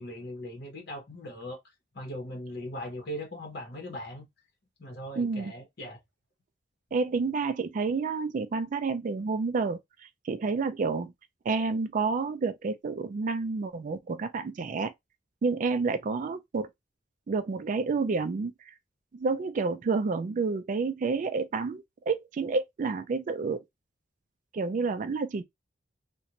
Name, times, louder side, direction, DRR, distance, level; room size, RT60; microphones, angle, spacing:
voice 1, 0.0-1.6 1.9-4.3 4.8-6.0, equal, 60° left, 1.0 m, -39 dB
voice 2, 5.2-5.5 6.9-9.8 10.2-11.1 11.5-14.9 15.4-16.7 17.3-18.5 19.1-23.6 24.5-25.4, right 4 dB, 45° right, 0.3 m, -29 dB
2.5 x 2.2 x 2.9 m
head